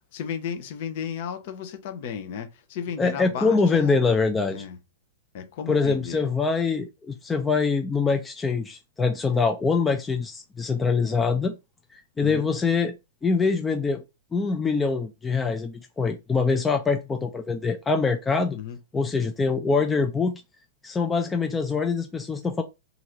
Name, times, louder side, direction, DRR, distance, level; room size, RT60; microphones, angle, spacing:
voice 1, 0.1-4.0 4.5-4.8 5.3-6.2 12.2-12.5 18.5-18.8, left 7 dB, 50° left, 0.6 m, -34 dB
voice 2, 3.0-4.6 5.7-11.5 11.9-12.9 13.2-14.0 14.3-18.6 18.9-20.4 20.8-22.6, left 4 dB, 15° left, 0.3 m, -24 dB
2.9 x 2.5 x 2.9 m
figure-of-eight pair, 105°, 0 cm